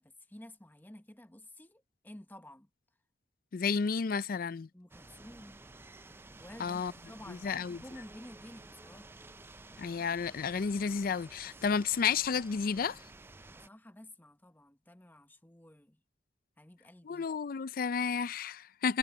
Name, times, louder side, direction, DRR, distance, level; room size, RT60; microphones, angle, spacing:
voice 1, 0.0-2.7 4.7-5.6 6.4-9.1 13.6-16.0 16.6-17.3, left 1 dB, 10° left, 1.1 m, -52 dB
voice 2, 3.5-4.7 6.6-6.9 7.3-7.8 9.8-13.0 17.0-19.0, left 6 dB, 55° left, 0.4 m, -31 dB
sound 1, 4.9-13.7, right 2 dB, 15° right, 0.4 m, -53 dB
head